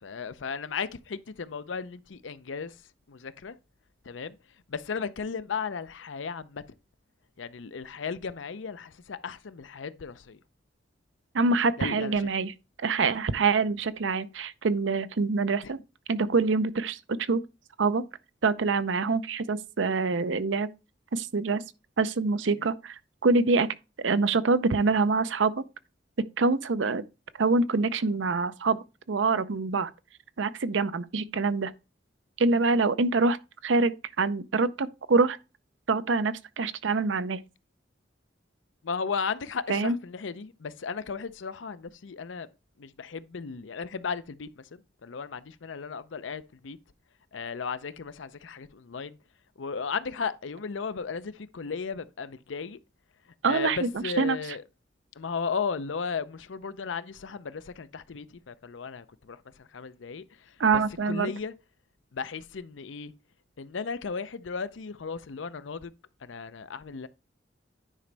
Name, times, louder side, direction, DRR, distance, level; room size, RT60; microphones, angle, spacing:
voice 1, 0.0-3.6 4.0-6.6 7.4-10.4 11.8-12.3 15.6-15.7 22.6-22.7 38.8-42.5 42.8-46.8 47.3-49.2 49.6-52.8 53.2-54.6 55.1-61.5 62.1-63.1 63.6-65.9 66.2-67.1, left 5 dB, 85° left, 0.6 m, -35 dB
voice 2, 11.3-12.5 12.8-15.8 16.1-17.4 17.8-18.0 18.4-20.7 21.1-21.6 22.0-23.7 24.0-25.5 26.4-27.0 27.4-28.8 29.1-29.9 30.4-31.7 32.4-33.4 33.6-35.4 35.9-37.4 39.7-39.9 53.4-53.9 54.2-54.4 60.6-61.3, right 4 dB, 85° right, 0.6 m, -25 dB
9.9 x 5.1 x 3.3 m
head